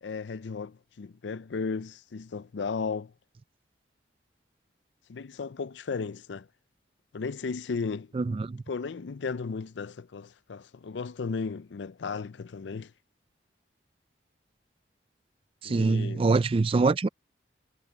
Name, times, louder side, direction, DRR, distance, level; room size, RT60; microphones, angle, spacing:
voice 1, 0.0-3.1 5.1-6.5 7.1-8.1 8.7-12.9 15.6-16.2, left 4 dB, 85° left, 0.5 m, -35 dB
voice 2, 8.1-8.6 15.6-17.1, right 3 dB, 30° right, 0.4 m, -24 dB
head